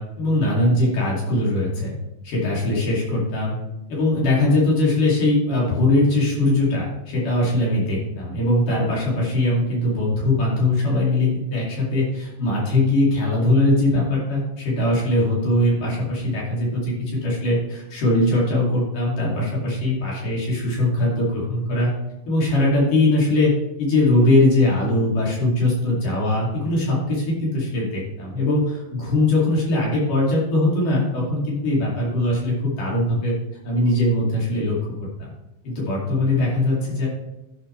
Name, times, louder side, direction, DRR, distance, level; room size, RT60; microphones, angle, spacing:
voice 1, 0.0-1.9 2.2-3.6 3.9-21.9 22.3-23.5 23.8-33.3 33.6-34.8 35.2-35.3 35.6-37.1, left 1 dB, 50° left, -5 dB, 3.9 m, -21 dB
11.5 x 6.6 x 3.3 m, 0.96 s
omnidirectional pair, 5.2 m